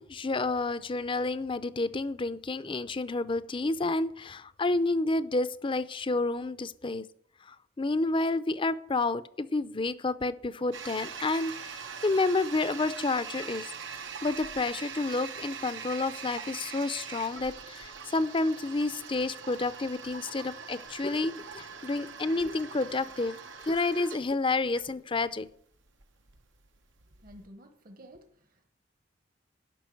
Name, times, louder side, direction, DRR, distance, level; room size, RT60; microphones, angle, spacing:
voice 1, 0.0-7.0 7.5-23.4 23.6-25.5, left 3 dB, 25° left, 0.6 m, -30 dB
Toilet flush, 10.7-27.4, right 6 dB, 80° right, 1.1 m, -43 dB
voice 2, 27.2-28.7, equal, 50° right, 1.2 m, -52 dB
11.5 x 5.9 x 9.1 m
head